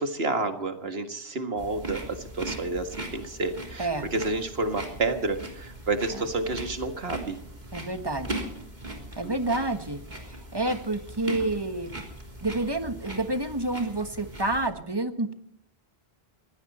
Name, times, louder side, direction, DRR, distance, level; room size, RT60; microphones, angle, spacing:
voice 1, 0.0-7.4 9.2-9.3, right 2 dB, 75° right, 7 dB, 2.0 m, -30 dB
sound 1, 1.6-14.7, right 1 dB, 45° right, 3.8 m, -39 dB
voice 2, 7.7-8.4 9.2-12.0 12.4-15.3, right 2 dB, 25° right, 9 dB, 1.3 m, -29 dB
21.0 x 16.0 x 4.3 m, 0.66 s
omnidirectional pair, 1.0 m